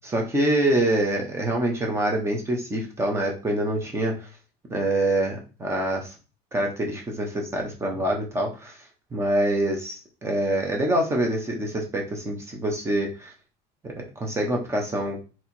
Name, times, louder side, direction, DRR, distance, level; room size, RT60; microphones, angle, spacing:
voice 1, 0.0-4.1 4.7-6.1 6.5-8.7 9.1-10.0 10.2-13.3 13.8-15.2, right 1 dB, 15° right, 1 dB, 1.0 m, -25 dB
3.3 x 2.9 x 4.3 m, 0.33 s
cardioid pair, 165°, 20 cm